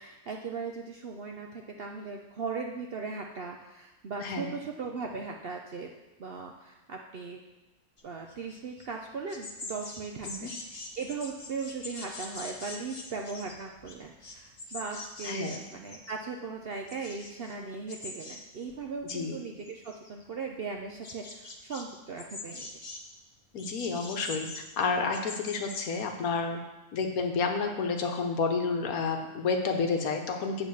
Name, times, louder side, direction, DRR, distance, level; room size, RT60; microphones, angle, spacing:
voice 1, 0.0-5.9 6.2-7.4 8.0-22.7, right 4 dB, 60° right, 1 dB, 0.6 m, -38 dB
voice 2, 4.2-4.5 10.2-10.5 15.2-15.5 19.0-19.4 23.5-26.6 26.9-30.7, left 4 dB, 75° left, 4 dB, 1.4 m, -30 dB
sound 1, 8.0-8.9 9.1-16.3 16.5-17.5 17.9-18.4 18.7-19.3 19.6-20.2 20.8-21.8 22.2-23.0 23.6-25.8, left 2 dB, 30° left, 0.7 m, -44 dB
8.4 x 4.0 x 6.9 m, 1.1 s
omnidirectional pair, 1.6 m